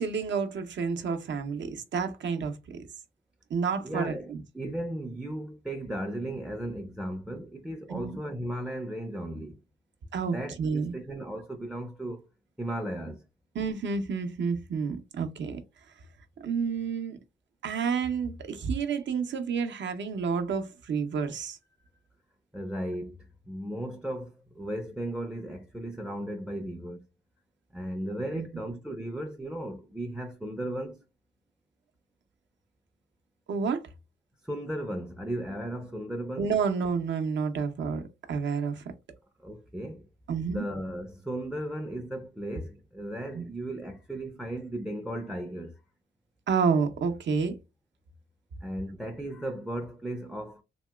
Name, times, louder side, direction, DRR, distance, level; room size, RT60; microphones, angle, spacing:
voice 1, 0.0-2.9 3.5-4.4 7.9-8.2 10.1-10.9 13.5-15.6 16.4-17.2 17.6-21.6 28.3-28.5 33.5-33.8 36.4-38.8 40.3-40.6 43.3-43.4 46.5-47.6, right 5 dB, 65° right, 0.6 m, -30 dB
voice 2, 3.8-9.6 10.2-12.2 12.6-13.2 22.5-27.0 27.7-31.0 34.4-36.5 39.4-40.1 40.4-45.8 48.6-50.6, right 1 dB, 5° right, 0.4 m, -36 dB
2.9 x 2.8 x 2.2 m
cardioid pair, 80°, 20 cm